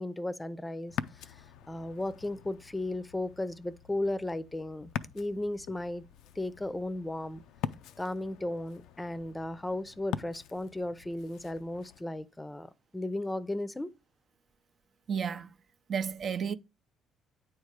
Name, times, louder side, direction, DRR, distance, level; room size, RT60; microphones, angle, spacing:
voice 1, 0.0-1.4 1.7-6.0 6.4-7.4 8.0-13.9, left 1 dB, 15° left, 0.6 m, -35 dB
Ocean, 0.9-12.0, left 10 dB, 75° left, 0.4 m, -43 dB
voice 2, 15.1-15.5 15.9-16.5, right 7 dB, 50° right, 0.5 m, -32 dB
9.0 x 3.2 x 4.9 m
hypercardioid pair, 60°, 0 cm